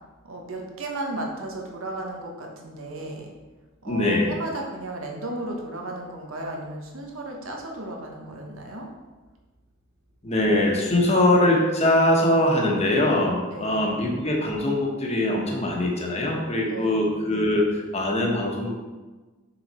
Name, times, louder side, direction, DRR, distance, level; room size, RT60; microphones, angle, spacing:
voice 1, 0.2-3.3 3.8-8.9 13.5-13.9 16.7-17.1, right 2 dB, 80° right, 1 dB, 1.2 m, -34 dB
voice 2, 3.8-4.3 10.2-18.9, left 1 dB, 30° left, -1 dB, 1.2 m, -22 dB
5.9 x 5.0 x 4.2 m, 1.2 s
head